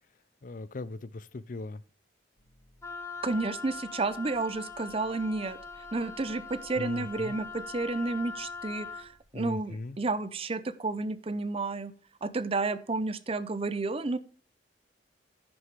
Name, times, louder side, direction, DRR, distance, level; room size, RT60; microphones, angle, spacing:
voice 1, 0.4-1.8 6.8-7.4 9.3-10.0, left 3 dB, 45° left, 0.5 m, -39 dB
sound 1, 2.4-9.2, equal, 85° left, 3.8 m, -61 dB
Wind instrument woodwind instrument, 2.8-9.1, left 4 dB, 15° left, 1.0 m, -42 dB
voice 2, 3.2-5.6 5.9-11.9 12.2-14.2, right 3 dB, 30° right, 0.6 m, -31 dB
10.5 x 6.6 x 4.7 m
head